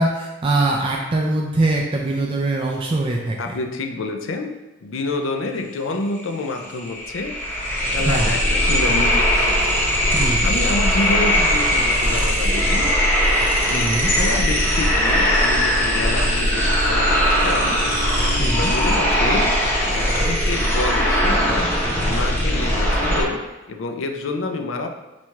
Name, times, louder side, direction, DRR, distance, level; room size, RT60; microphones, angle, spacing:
voice 1, 0.0-3.6 8.0-8.4 10.1-10.5 13.7-14.1 18.4-18.7, right 2 dB, 25° right, -1 dB, 0.3 m, -22 dB
voice 2, 3.4-7.4 7.8-9.7 10.4-13.0 13.7-17.9 18.4-19.5 19.8-24.9, left 2 dB, 70° left, 5 dB, 0.4 m, -28 dB
sound 1, 6.2-6.3 6.6-23.2, equal, 10° left, 0.7 m, -19 dB
sound 2, 12.1-19.5, left 6 dB, 50° left, 0.9 m, -36 dB
4.1 x 2.3 x 4.6 m, 1.1 s
head